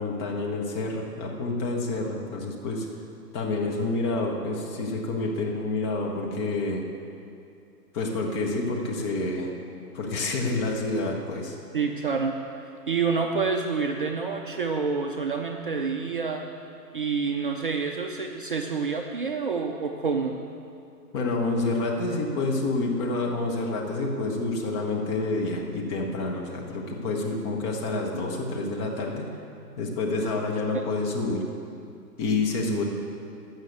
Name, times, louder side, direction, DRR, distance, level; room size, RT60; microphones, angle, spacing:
voice 1, 0.0-2.9 3.3-6.8 7.9-9.5 9.9-11.6 21.1-29.2 29.8-31.4 32.2-32.8, left 2 dB, 15° left, 0 dB, 0.9 m, -28 dB
voice 2, 11.7-12.4 12.9-16.4 16.9-20.4 30.7-30.8, right 5 dB, 35° right, 3 dB, 0.5 m, -28 dB
13.0 x 6.5 x 8.0 m, 2.5 s
figure-of-eight pair, 140°, 48 cm